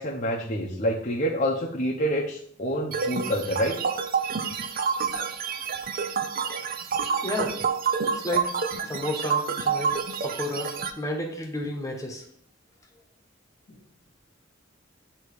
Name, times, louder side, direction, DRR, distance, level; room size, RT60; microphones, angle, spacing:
voice 1, 0.0-3.8, equal, 40° left, -1 dB, 0.7 m, -27 dB
sound 1, 2.9-10.9, right 6 dB, 50° right, 0.6 m, -28 dB
voice 2, 7.2-7.6 8.1-8.5 8.8-9.9 10.2-12.2, left 1 dB, 15° left, 1 dB, 1.1 m, -31 dB
8.3 x 3.0 x 4.9 m, 0.63 s
head